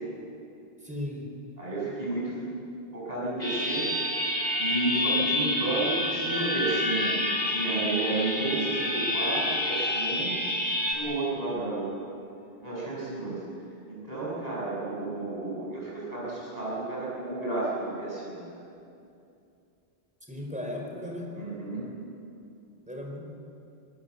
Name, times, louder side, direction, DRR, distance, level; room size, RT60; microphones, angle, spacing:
voice 1, 0.8-1.3 20.3-21.3 22.9-23.2, left 1 dB, 5° right, 0 dB, 4.4 m, -36 dB
voice 2, 1.6-2.4 2.9-3.9 4.6-10.3 10.9-12.2 12.6-13.4 13.9-18.6 21.4-21.9, right 2 dB, 40° right, -7 dB, 7.2 m, -32 dB
sound 1, 3.4-10.9, left 1 dB, 70° left, 4.1 m, -28 dB
26.5 x 20.0 x 8.3 m, 2.6 s
omnidirectional pair, 1.0 m